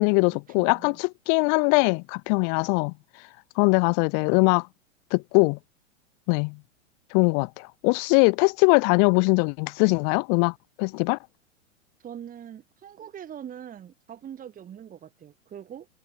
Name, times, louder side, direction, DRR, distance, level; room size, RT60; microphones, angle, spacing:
voice 1, 0.0-2.9 3.6-4.7 5.1-5.6 6.3-6.6 7.1-11.2, left 40 dB or more, 40° left, 1.1 m, -22 dB
voice 2, 0.6-1.0 12.0-15.9, right 9 dB, 20° right, 2.7 m, -42 dB
figure-of-eight pair, 105°, 38 cm